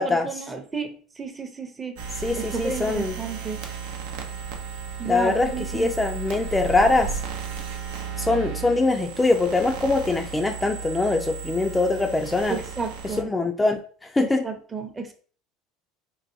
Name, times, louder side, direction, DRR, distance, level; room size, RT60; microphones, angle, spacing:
voice 1, 0.0-2.0 2.3-3.6 5.0-6.0 12.5-13.3 14.2-15.1, right 4 dB, 25° right, 6 dB, 0.6 m, -32 dB
sound 1, 2.0-13.2, right 7 dB, 75° right, 0.5 m, -34 dB
voice 2, 2.2-3.1 5.0-7.1 8.2-12.6 13.2-13.8 14.1-14.4, left 3 dB, 15° left, 4 dB, 0.3 m, -23 dB
3.9 x 2.1 x 2.6 m, 0.43 s
hypercardioid pair, 85°, 0 cm